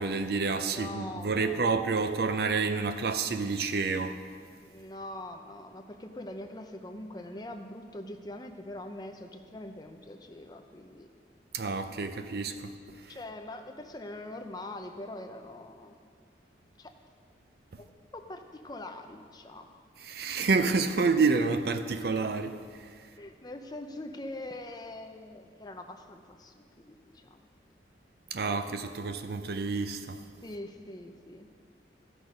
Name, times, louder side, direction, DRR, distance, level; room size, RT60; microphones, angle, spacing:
voice 1, 0.0-4.2 11.5-12.7 17.7-17.8 20.1-22.6 28.3-30.2, right 4 dB, 60° right, 0.5 m, -28 dB
voice 2, 0.5-1.8 4.7-11.1 13.1-15.9 16.8-16.9 17.8-19.7 23.1-27.5 30.4-31.5, left 1 dB, 20° left, 0.6 m, -43 dB
14.0 x 6.2 x 5.1 m
head